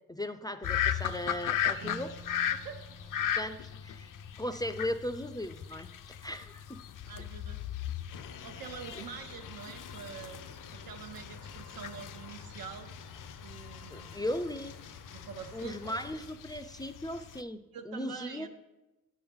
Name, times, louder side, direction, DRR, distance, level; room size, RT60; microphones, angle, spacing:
voice 1, 0.1-2.1 3.4-4.1 4.4-5.9 6.2-6.8 13.9-14.8 15.5-18.5, left 1 dB, 10° left, 10 dB, 0.4 m, -37 dB
sound 1, 0.6-17.4, left 9 dB, 65° left, 0.5 m, -38 dB
sound 2, 1.8-14.2 14.5-15.4 15.9-16.0, equal, 50° right, 1.0 m, -57 dB
voice 2, 2.5-3.3 7.0-7.7 7.9-8.1 8.4-10.4 10.7-12.9 13.4-14.2 15.1-16.2 17.7-18.5, right 7 dB, 85° right, 6 dB, 0.9 m, -46 dB
sound 3, 8.1-16.3, left 5 dB, 85° left, 0.9 m, -50 dB
9.6 x 3.9 x 7.0 m, 1.0 s
cardioid pair, 90°, 35 cm